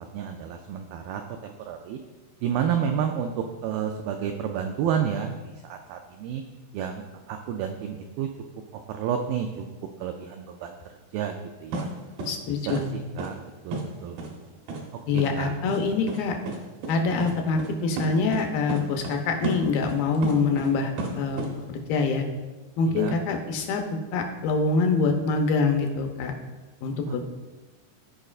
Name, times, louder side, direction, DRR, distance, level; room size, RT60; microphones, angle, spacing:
voice 1, 0.1-2.0 2.4-6.4 6.7-8.3 8.7-9.7 10.0-10.8 11.1-11.4 11.6-11.9 12.7-13.4 13.6-14.5 15.1-15.5 22.9-23.2, right 8 dB, 90° right, 4 dB, 2.0 m, -30 dB
sound 1, 11.7-11.9 12.2-12.3 12.7-12.8 13.2-13.3 13.7-13.8 14.2-14.3 14.7-14.8 15.2-15.3 15.7-15.8 16.1-16.2 16.5-16.6 16.8-16.9 17.2-17.3 17.6-17.7 18.0-18.4 18.7-19.2 19.4-20.7 21.0-21.5, right 3 dB, 75° right, 2.8 m, -31 dB
voice 2, 12.3-12.9 15.1-16.4 16.9-21.4 21.7-22.2 22.8-26.3 26.8-27.2, left 4 dB, 80° left, 3 dB, 2.3 m, -25 dB
15.0 x 5.2 x 2.4 m, 1.2 s
omnidirectional pair, 4.7 m